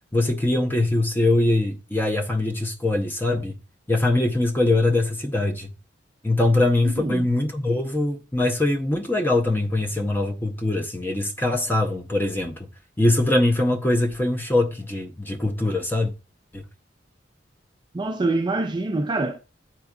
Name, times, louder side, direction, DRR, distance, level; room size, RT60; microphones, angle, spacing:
voice 1, 0.1-3.6 3.9-5.7 6.2-12.6 13.0-16.1 16.5-16.6, left 2 dB, 10° left, 0.7 m, -22 dB
voice 2, 6.8-7.3 17.9-19.4, right 2 dB, 25° right, 0.4 m, -25 dB
12.0 x 4.4 x 2.3 m
head